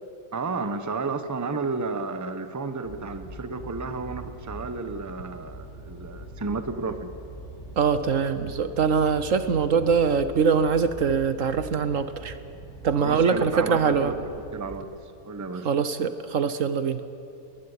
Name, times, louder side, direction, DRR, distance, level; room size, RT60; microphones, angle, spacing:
voice 1, 0.3-7.1 13.0-14.2 14.5-15.7, right 4 dB, 15° right, 10 dB, 0.9 m, -32 dB
sound 1, 2.8-14.8, right 2 dB, 45° left, 6.9 m, -43 dB
voice 2, 7.8-12.4 12.8-14.1 15.6-17.0, right 6 dB, 60° right, 12 dB, 1.2 m, -23 dB
20.0 x 20.0 x 9.7 m, 2.6 s
omnidirectional pair, 1.6 m